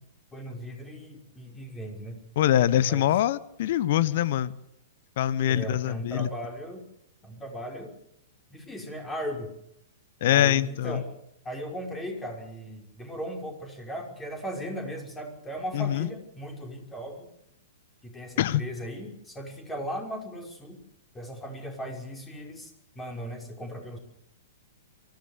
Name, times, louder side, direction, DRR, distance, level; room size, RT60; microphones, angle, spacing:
voice 1, 0.3-2.2 2.8-3.1 5.5-6.8 7.2-7.9 8.5-9.5 10.2-11.0 11.4-17.3 18.0-20.8 21.1-24.0, equal, 10° left, 5.7 m, -37 dB
voice 2, 2.4-4.5 5.2-6.3 10.2-11.0 15.7-16.1 18.4-18.6, left 12 dB, 55° left, 1.1 m, -24 dB
24.0 x 16.0 x 8.3 m
hypercardioid pair, 110°, 0 cm